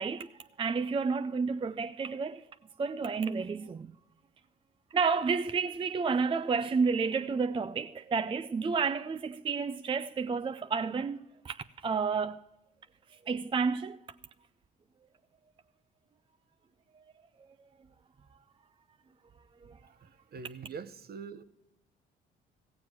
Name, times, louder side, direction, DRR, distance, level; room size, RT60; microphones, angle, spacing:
voice 1, 0.0-2.5 2.8-3.9 4.9-12.4 13.1-14.0 19.6-19.8, right 5 dB, 25° right, 0.4 m, -31 dB
voice 2, 20.3-21.4, right 5 dB, 50° right, 0.8 m, -43 dB
16.0 x 7.5 x 5.9 m
supercardioid pair, 65°, 21 cm